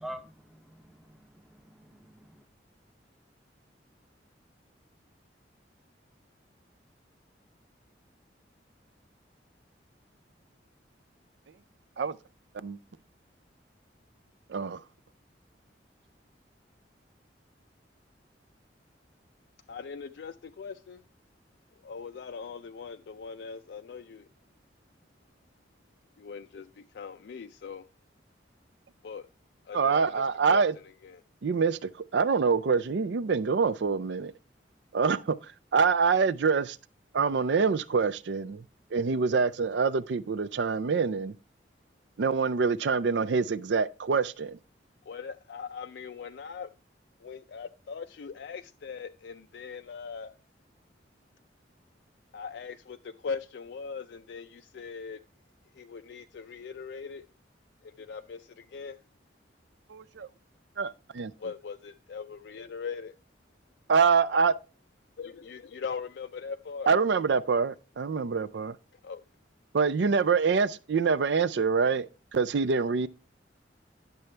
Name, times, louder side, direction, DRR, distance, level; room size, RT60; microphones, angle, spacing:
voice 1, 0.0-2.4, right 1 dB, ahead, 0.7 m, -46 dB
voice 2, 14.5-14.8 29.7-30.7 31.4-34.3 34.9-35.4 35.7-36.8 37.1-38.6 38.9-41.3 42.2-44.6 59.9-60.3 60.8-61.3 63.9-64.6 66.9-68.8 69.7-73.1, right 5 dB, 75° right, 0.4 m, -25 dB
voice 3, 19.7-21.0 21.8-24.3 26.2-27.9 29.0-29.3 29.7-30.2 30.5-31.2 45.0-46.7 47.2-50.3 52.3-55.2 55.7-57.2 57.8-59.0 61.4-63.1 65.2-66.9 68.9-69.2, left 5 dB, 65° left, 0.4 m, -40 dB
10.5 x 6.9 x 3.2 m
head